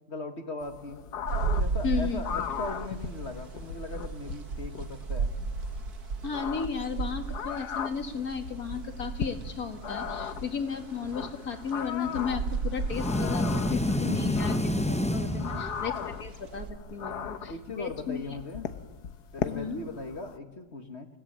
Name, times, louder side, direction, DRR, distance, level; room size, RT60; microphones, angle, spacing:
voice 1, 0.1-1.0 1.5-5.3 14.1-14.3 15.2-15.6 17.0-17.2 17.5-18.7 19.3-21.1, left 3 dB, 45° left, 6 dB, 2.0 m, -39 dB
sound 1, 0.6-20.4, left 7 dB, 85° left, 1.7 m, -38 dB
sound 2, 1.3-16.7, right 4 dB, 75° right, 2.3 m, -36 dB
voice 2, 1.8-2.2 6.2-18.2 19.4-19.8, left 6 dB, 65° left, 6 dB, 2.6 m, -34 dB
sound 3, 12.9-16.1, left 1 dB, 10° left, 0.4 m, -28 dB
29.0 x 18.5 x 8.9 m, 1.2 s
omnidirectional pair, 1.7 m